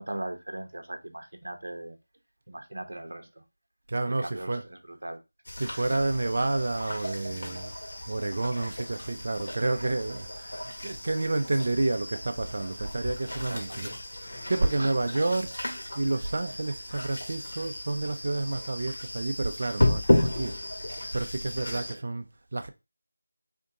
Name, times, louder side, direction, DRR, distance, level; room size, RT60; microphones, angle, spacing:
voice 1, 0.0-2.0 2.5-3.4 4.1-5.2 9.7-9.9 13.5-14.0 14.8-14.9 20.0-20.5 21.7-22.0, right 1 dB, 70° right, 0.8 m, -39 dB
voice 2, 3.9-4.6 5.6-7.7 8.1-10.5 10.8-13.9 14.2-15.6 15.9-20.6 21.1-22.3 22.5-22.7, right 2 dB, 40° right, 0.5 m, -29 dB
sound 1, 5.4-21.9, left 1 dB, 60° left, 1.4 m, -33 dB
sound 2, 7.5-7.6 9.8-10.3 10.7-11.0 11.4-11.9 12.2-12.9 13.4-13.8, right 1 dB, 5° left, 0.7 m, -46 dB
3.5 x 2.7 x 3.7 m
figure-of-eight pair, 175°, 0 cm